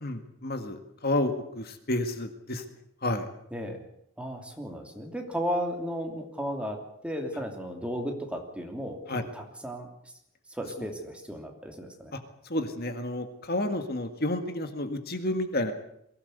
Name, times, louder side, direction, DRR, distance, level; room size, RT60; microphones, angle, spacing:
voice 1, 0.0-2.6 3.0-3.3 9.1-9.2 12.5-15.7, left 1 dB, 45° left, 7 dB, 1.9 m, -30 dB
voice 2, 3.5-3.8 4.2-9.9 10.5-12.1, equal, 5° right, 3 dB, 2.9 m, -34 dB
22.5 x 17.0 x 8.2 m, 0.76 s
head